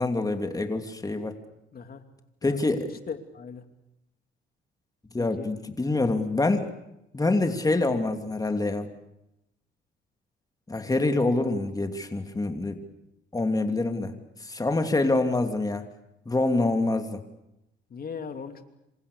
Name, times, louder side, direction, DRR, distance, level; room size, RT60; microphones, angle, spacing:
voice 1, 0.0-1.3 2.4-2.9 5.1-6.7 7.1-8.9 10.7-12.8 13.3-14.1 14.4-15.8 16.3-17.2, left 2 dB, 20° left, 6 dB, 2.8 m, -26 dB
voice 2, 1.7-2.0 2.4-2.6 3.1-3.6 5.2-5.5 17.9-18.6, left 6 dB, 50° left, 7 dB, 2.9 m, -38 dB
27.0 x 26.5 x 6.9 m, 0.86 s
cardioid pair, 90°, 20 cm